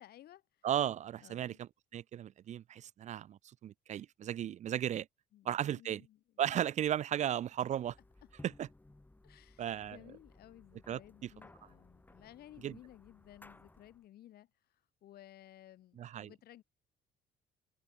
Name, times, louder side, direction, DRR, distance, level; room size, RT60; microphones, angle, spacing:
voice 1, 0.0-0.7 1.2-1.6 5.3-6.2 6.4-6.6 7.7-7.8 8.2-8.3 9.2-16.6, left 13 dB, 65° left, 3.6 m, -57 dB
voice 2, 0.6-5.1 5.5-6.0 6.4-7.9 8.4-8.7 9.6-10.0 10.9-11.3 12.6-12.8 16.0-16.3, right 10 dB, 45° right, 0.4 m, -35 dB
sound 1, 7.5-14.0, left 2 dB, 10° left, 7.9 m, -60 dB
cardioid pair, 110°, 17 cm